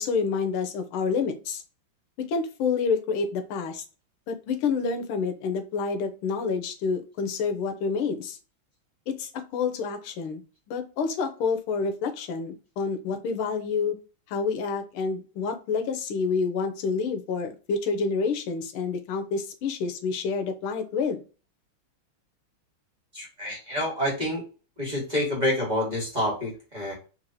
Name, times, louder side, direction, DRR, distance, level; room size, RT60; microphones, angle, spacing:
voice 1, 0.0-1.6 2.2-3.8 4.3-8.4 9.1-10.4 10.7-13.9 14.3-21.2, left 5 dB, 85° left, 7 dB, 1.5 m, -28 dB
voice 2, 23.1-24.4 24.8-26.9, left 1 dB, 25° right, -4 dB, 1.3 m, -28 dB
4.4 x 2.7 x 2.6 m, 0.35 s
omnidirectional pair, 2.3 m